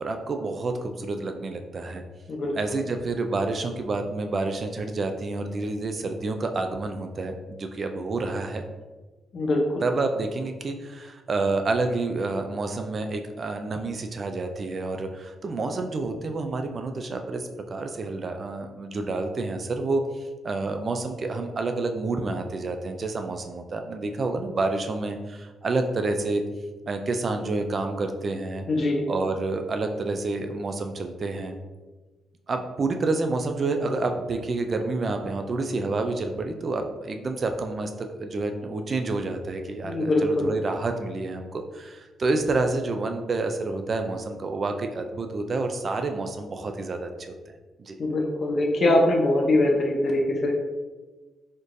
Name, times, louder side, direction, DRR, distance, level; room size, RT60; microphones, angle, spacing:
voice 1, 0.0-2.0 2.5-8.6 9.8-26.4 26.9-28.6 29.1-31.6 32.5-47.4 47.8-48.0, right 3 dB, 50° right, 6 dB, 0.4 m, -29 dB
voice 2, 9.3-9.8 28.7-29.1 39.8-40.5 48.0-50.5, left 1 dB, 55° left, 0 dB, 0.8 m, -23 dB
4.2 x 3.1 x 2.6 m, 1.2 s
supercardioid pair, 60°, 0 cm